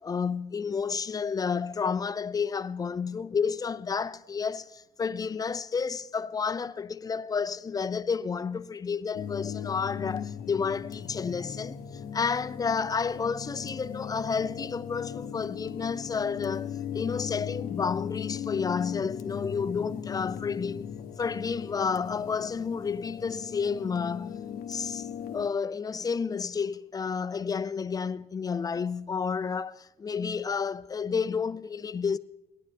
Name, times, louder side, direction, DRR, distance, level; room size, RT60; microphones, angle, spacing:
voice 1, 0.0-20.9 21.2-24.4 24.7-25.1 25.3-32.2, left 5 dB, 20° left, 0.4 m, -31 dB
sound 1, 9.1-25.5, left 8 dB, 60° left, 0.7 m, -38 dB
18.0 x 11.5 x 3.4 m
cardioid pair, 110°, 17 cm